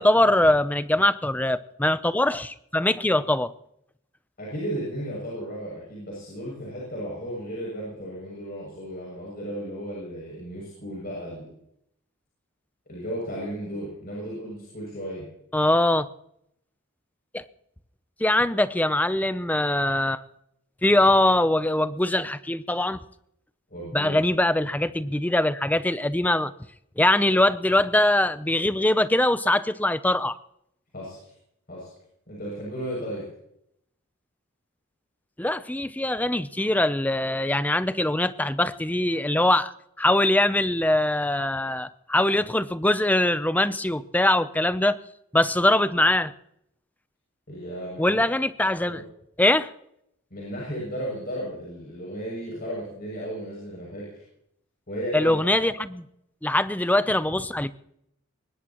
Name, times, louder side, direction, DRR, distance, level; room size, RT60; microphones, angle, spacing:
voice 1, 0.0-3.5 15.5-16.1 17.3-17.4 18.2-20.2 20.8-23.0 23.9-26.5 27.0-30.4 35.4-39.7 40.0-45.0 45.3-46.3 48.0-49.0 49.4-49.7 55.1-56.0 56.4-57.7, left 1 dB, 10° left, 13 dB, 0.6 m, -22 dB
voice 2, 4.4-11.5 12.9-15.3 23.7-24.2 30.9-31.3 31.7-31.9 32.3-33.2 47.5-48.2 48.9-49.0 50.3-54.2 54.9-55.7, equal, 45° left, -5 dB, 7.2 m, -34 dB
22.5 x 19.5 x 3.0 m, 0.76 s
head